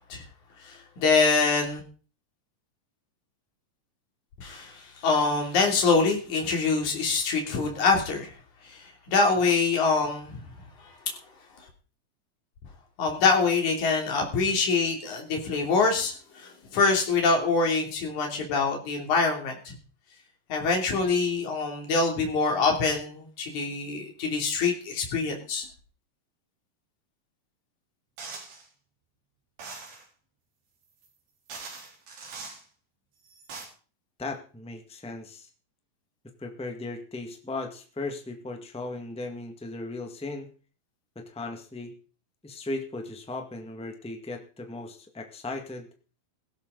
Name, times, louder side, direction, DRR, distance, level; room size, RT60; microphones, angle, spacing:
voice 1, 0.6-1.8 4.4-8.3 8.7-8.8 9.1-10.4 13.0-19.7 20.5-25.7, left 4 dB, 60° left, 2 dB, 4.4 m, -25 dB
sound 1, 28.2-28.7 29.6-30.1 31.0-31.1 31.5-32.6 33.3-33.7, right 4 dB, 90° right, 5.5 m, -41 dB
voice 2, 34.2-35.5 36.4-40.5 41.1-41.9 42.4-45.9, left 2 dB, 5° left, 4 dB, 0.5 m, -37 dB
16.5 x 13.5 x 4.0 m, 0.38 s
omnidirectional pair, 4.0 m